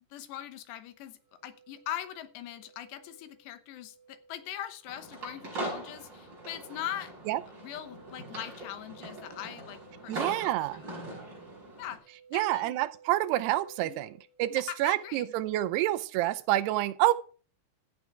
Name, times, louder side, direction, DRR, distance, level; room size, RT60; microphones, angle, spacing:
voice 1, 0.1-7.1 7.6-10.9 11.8-12.8 13.8-14.0 14.5-15.3, left 11 dB, 90° left, 3.2 m, -41 dB
sound 1, 1.3-15.5, right 3 dB, 55° right, 0.5 m, -57 dB
sound 2, 4.9-12.0, right 2 dB, 25° right, 6.2 m, -41 dB
voice 2, 10.1-10.8 12.3-17.1, right 15 dB, 85° right, 2.7 m, -28 dB
15.0 x 7.3 x 4.6 m
omnidirectional pair, 4.8 m